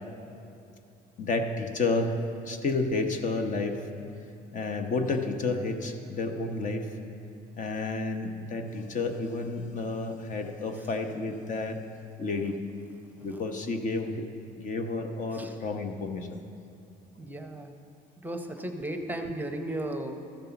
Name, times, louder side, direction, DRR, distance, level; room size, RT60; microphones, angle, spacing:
voice 1, 1.2-2.2 2.4-3.8 4.5-6.8 7.6-11.8 12.2-12.5 13.2-14.2 14.6-16.4, left 3 dB, 50° left, 6 dB, 0.9 m, -30 dB
voice 2, 17.2-17.8 18.2-20.1, right 1 dB, 10° right, 5 dB, 0.7 m, -35 dB
13.5 x 5.4 x 7.0 m, 2.7 s
cardioid pair, 110°, 17 cm